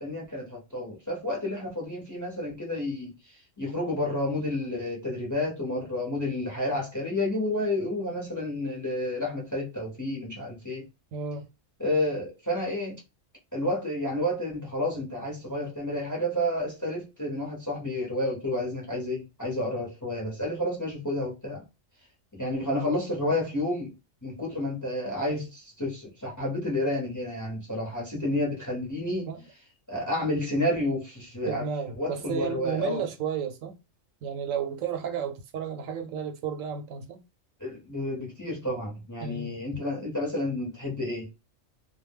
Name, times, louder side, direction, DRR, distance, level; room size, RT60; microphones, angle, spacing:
voice 1, 0.0-3.1 3.6-10.8 11.8-13.0 13.5-21.6 22.3-23.9 24.2-29.3 29.9-31.7 32.0-33.0 37.6-41.3, left 1 dB, 20° left, 0.6 m, -30 dB
voice 2, 11.1-11.4 28.1-28.3 29.3-29.4 31.5-33.8 34.2-37.2 39.2-39.6, right 7 dB, 80° right, 1.0 m, -32 dB
2.2 x 2.1 x 3.4 m
omnidirectional pair, 1.4 m